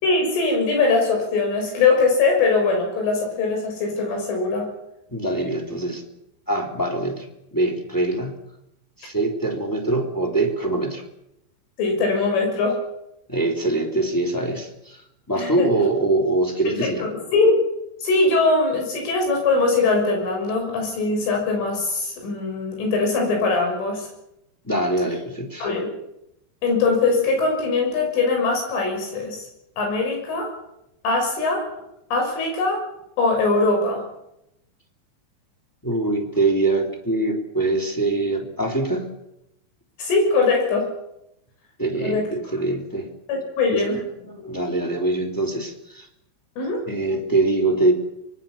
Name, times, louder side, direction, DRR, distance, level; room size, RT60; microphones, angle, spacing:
voice 1, 0.0-4.7 11.8-12.8 15.3-15.7 16.7-17.5 18.0-24.1 25.6-25.9 26.6-29.4 29.8-30.6 31.0-31.7 32.1-32.8 33.2-34.0 40.0-40.9 42.0-42.3 43.3-44.0 46.6-46.8, left 3 dB, 85° left, 2 dB, 8.6 m, -21 dB
voice 2, 5.1-6.0 6.5-8.3 9.0-11.0 13.3-15.0 15.3-17.1 24.6-25.7 35.8-39.1 41.8-43.1 43.7-43.8 44.3-46.1 46.9-47.9, right 2 dB, 5° left, 3 dB, 2.9 m, -23 dB
24.5 x 21.5 x 7.4 m, 0.83 s
omnidirectional pair, 5.5 m